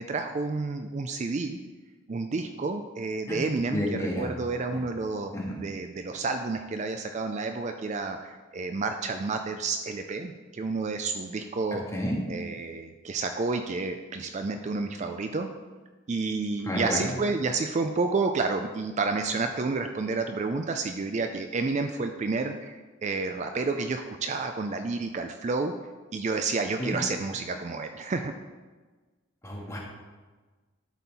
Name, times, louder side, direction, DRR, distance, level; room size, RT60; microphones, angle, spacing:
voice 1, 0.0-1.6 2.1-3.8 4.2-5.3 5.6-11.8 12.3-15.5 16.1-22.7 23.0-25.7 26.1-28.3, right 3 dB, 35° right, 6 dB, 0.4 m, -30 dB
voice 2, 3.7-4.3 5.3-5.6 11.7-12.2 16.6-17.1 26.8-27.0 29.4-29.8, equal, 15° left, -3 dB, 1.7 m, -30 dB
12.0 x 4.3 x 4.1 m, 1.3 s
head